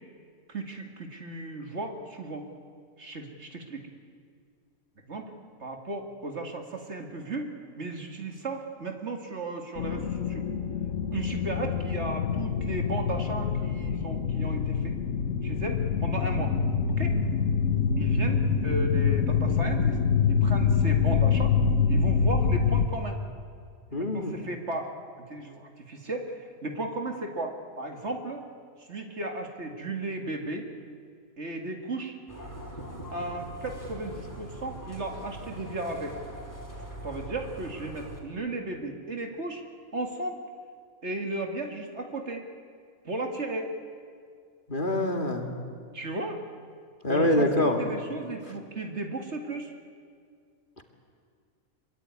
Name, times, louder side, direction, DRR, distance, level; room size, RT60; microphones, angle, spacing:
voice 1, 0.5-2.4 3.0-3.8 5.1-5.3 5.6-10.5 11.1-14.9 15.4-16.6 17.0-17.1 18.0-20.0 20.3-21.5 21.9-23.2 23.9-24.9 25.3-28.4 28.8-30.7 31.4-32.2 33.1-36.2 37.0-39.6 39.9-40.4 41.0-42.5 43.0-43.7 45.9-46.4 47.1-49.7, right 2 dB, 50° right, 3 dB, 2.4 m, -35 dB
sound 1, 9.8-22.9, left 6 dB, 60° left, 1.5 m, -25 dB
voice 2, 23.9-24.3 44.7-45.5 47.0-47.8, left 1 dB, 35° left, 3 dB, 2.4 m, -25 dB
sound 2, 32.3-38.2, right 1 dB, 10° left, 4.1 m, -42 dB
25.5 x 23.0 x 9.6 m, 2.2 s
omnidirectional pair, 1.5 m